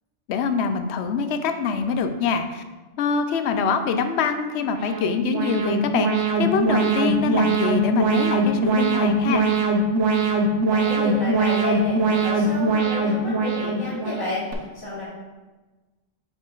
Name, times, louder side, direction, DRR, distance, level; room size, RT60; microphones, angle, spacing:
voice 1, 0.3-2.6 3.0-9.5, left 5 dB, 70° left, 8 dB, 0.8 m, -24 dB
Alarm, 4.6-14.5, right 2 dB, 90° right, 1.1 m, -22 dB
voice 2, 10.7-15.0, left 2 dB, 20° left, -9 dB, 1.7 m, -30 dB
5.0 x 4.8 x 3.9 m, 1.2 s
omnidirectional pair, 1.2 m